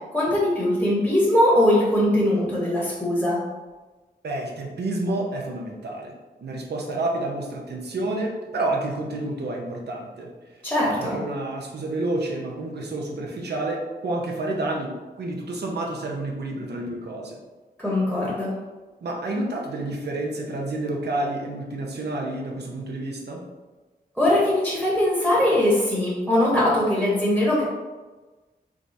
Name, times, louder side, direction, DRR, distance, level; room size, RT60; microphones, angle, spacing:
voice 1, 0.1-3.4 10.6-11.2 17.8-18.5 24.2-27.6, left 1 dB, 5° right, -7 dB, 1.0 m, -21 dB
voice 2, 4.2-6.1 6.4-10.3 10.8-17.4 19.0-23.4, right 2 dB, 85° right, 0 dB, 0.7 m, -29 dB
3.6 x 3.4 x 2.6 m, 1.3 s
wide cardioid pair, 95°, 17 cm